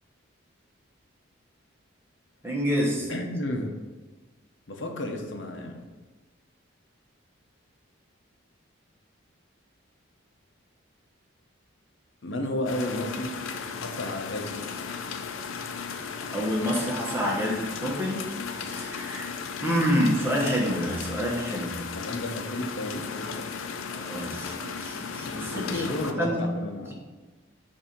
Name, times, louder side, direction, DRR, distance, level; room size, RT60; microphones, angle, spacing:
voice 1, 2.4-3.1 16.3-19.3 19.6-21.7 23.9-26.4, equal, 10° right, -3 dB, 1.1 m, -28 dB
voice 2, 3.1-3.8 4.7-5.9 12.2-13.4 13.8-14.7 19.8-20.0 21.9-23.5 25.7-26.9, left 1 dB, 65° left, 3 dB, 0.8 m, -32 dB
sound 1, 12.7-26.1, left 5 dB, 85° left, 0.5 m, -35 dB
7.1 x 2.7 x 5.2 m, 1.2 s
head